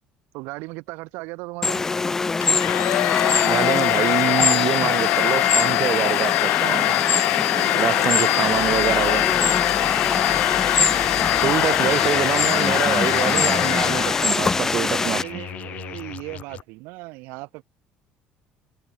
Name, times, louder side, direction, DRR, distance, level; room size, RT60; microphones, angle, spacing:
voice 1, 0.3-1.8 7.5-8.8 15.0-17.6, right 25 dB, 85° right, 4.1 m, -37 dB
sound 1, 1.6-15.2, left 4 dB, 15° left, 1.0 m, -24 dB
Domestic sounds home sounds, 2.4-14.5, left 19 dB, 60° left, 0.4 m, -22 dB
voice 2, 3.4-7.0 7.8-9.3 11.4-15.2, right 10 dB, 35° right, 0.6 m, -25 dB
sound 2, 8.5-16.6, left 11 dB, 40° left, 3.7 m, -36 dB
cardioid pair, 180°, 3 cm